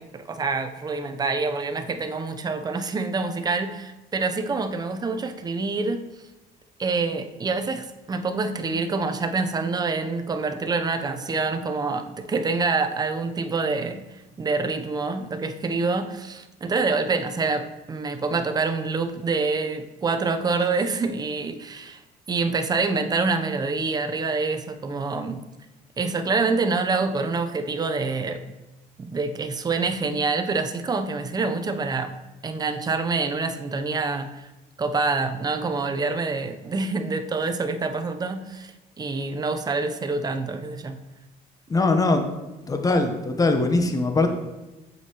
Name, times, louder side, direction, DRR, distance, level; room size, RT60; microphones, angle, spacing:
voice 1, 0.0-6.0 6.8-14.1 14.4-22.0 22.3-25.4 26.0-28.4 29.0-32.1 32.4-34.5 34.8-38.7 39.0-41.0, right 4 dB, 25° right, 7 dB, 0.5 m, -26 dB
voice 2, 41.7-42.2 42.7-44.3, left 3 dB, 20° left, 6 dB, 0.8 m, -21 dB
7.9 x 5.3 x 2.9 m, 1.1 s
cardioid pair, 110°, 17 cm